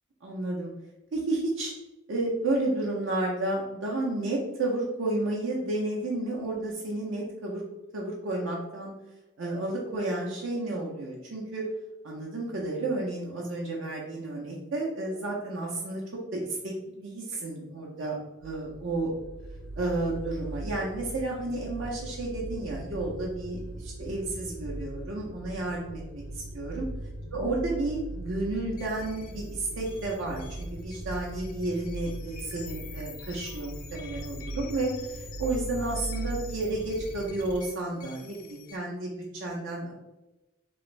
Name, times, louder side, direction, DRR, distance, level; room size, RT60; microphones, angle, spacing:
voice 1, 0.2-0.7 1.1-1.7 2.1-7.6 7.9-8.9 9.4-11.6 12.0-16.0 16.3-19.1 19.8-26.9 27.3-39.9, right 2 dB, 65° right, -3 dB, 0.5 m, -32 dB
sound 1, 18.4-37.6, right 1 dB, 70° left, 0.7 m, -39 dB
sound 2, 28.8-38.8, left 7 dB, 40° left, 0.4 m, -48 dB
3.1 x 2.5 x 3.1 m, 1.0 s
head